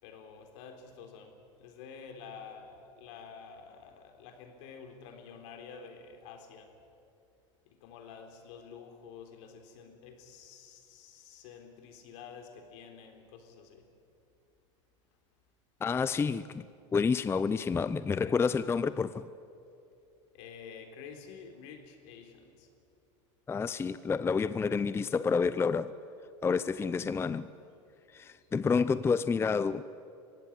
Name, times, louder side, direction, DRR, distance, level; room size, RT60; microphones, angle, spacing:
voice 1, 0.0-6.7 7.7-13.9 20.3-22.7, left 6 dB, 70° left, 5 dB, 3.6 m, -49 dB
voice 2, 15.8-16.7 16.9-19.3 23.5-25.9 26.4-27.5 28.1-29.8, left 5 dB, 15° left, 15 dB, 0.5 m, -29 dB
24.5 x 16.5 x 9.8 m, 2.6 s
supercardioid pair, 110°, 16 cm